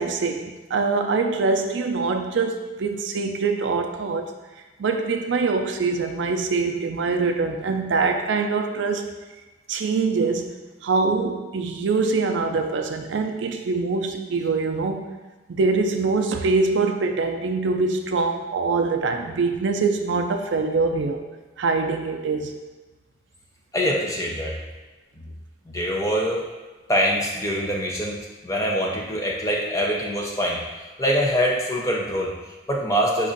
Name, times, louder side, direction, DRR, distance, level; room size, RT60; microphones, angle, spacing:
voice 1, 0.0-4.3 4.8-9.1 9.7-10.5 10.8-15.1 15.5-21.2 21.6-22.5, right 4 dB, 80° right, 5 dB, 0.4 m, -24 dB
voice 2, 23.7-24.6 25.2-25.3 25.7-26.4 26.9-28.2 28.4-30.6 31.0-33.3, equal, 15° left, -2 dB, 0.5 m, -24 dB
5.1 x 2.4 x 3.8 m, 1.2 s
head